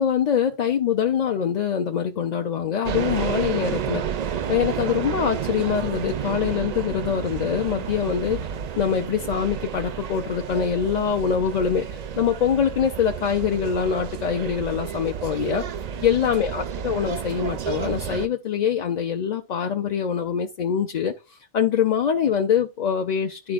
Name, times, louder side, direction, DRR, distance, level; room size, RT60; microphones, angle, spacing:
voice 1, 0.0-4.0 4.5-8.4 8.8-15.6 16.0-23.5, left 7 dB, 50° left, 0.5 m, -24 dB
sound 1, 2.8-18.3, right 8 dB, 60° right, 0.4 m, -31 dB
12.0 x 4.2 x 2.4 m
omnidirectional pair, 1.1 m